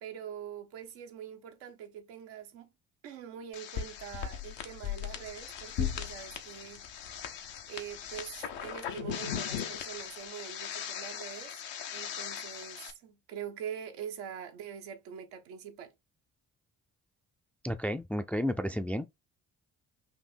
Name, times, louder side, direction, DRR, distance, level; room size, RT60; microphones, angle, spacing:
voice 1, 0.0-2.7 3.0-6.9 7.7-11.6 11.9-15.9, right 9 dB, 80° right, 0.9 m, -44 dB
sound 1, 3.5-12.9, left 8 dB, 75° left, 0.8 m, -38 dB
voice 2, 17.6-19.0, equal, 5° left, 0.4 m, -32 dB
4.3 x 2.7 x 3.5 m
hypercardioid pair, 45°, 43 cm